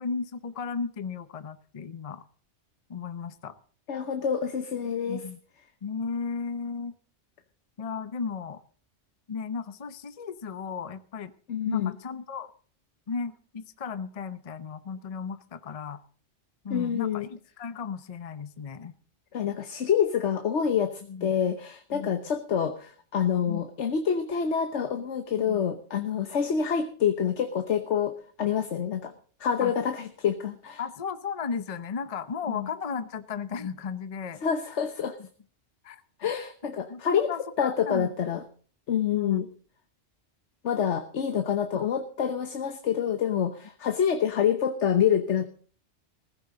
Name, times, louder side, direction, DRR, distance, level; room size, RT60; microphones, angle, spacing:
voice 1, 0.0-2.2 2.9-3.5 5.1-5.4 5.8-6.9 7.8-8.6 9.3-11.3 11.7-12.5 13.1-16.0 16.6-18.9 21.1-21.3 21.9-22.1 23.5-23.6 25.4-25.6 26.1-26.3 29.6-29.7 30.8-34.4 35.8-36.0 36.6-37.0 37.3-38.1 39.1-39.4 41.7-41.8, left 5 dB, 35° left, 12 dB, 0.8 m, -35 dB
voice 2, 3.9-5.2 11.5-11.9 16.7-17.3 19.3-29.1 29.4-30.8 32.5-32.7 34.4-35.2 36.2-37.3 37.6-38.4 38.9-39.5 40.6-45.4, left 8 dB, 80° left, 8 dB, 1.3 m, -27 dB
16.0 x 15.0 x 3.8 m, 0.43 s
omnidirectional pair, 1.2 m